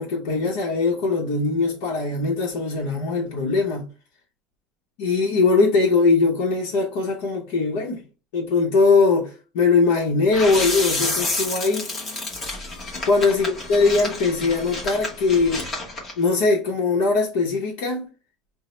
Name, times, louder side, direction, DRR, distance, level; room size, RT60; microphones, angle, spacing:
voice 1, 0.0-3.9 5.0-8.0 8.3-11.9 13.0-15.7 16.2-18.1, left 4 dB, 75° left, 0.8 m, -21 dB
sound 1, 10.3-16.1, left 2 dB, 20° left, 0.9 m, -29 dB
5.4 x 2.0 x 3.0 m
cardioid pair, 175°, 0 cm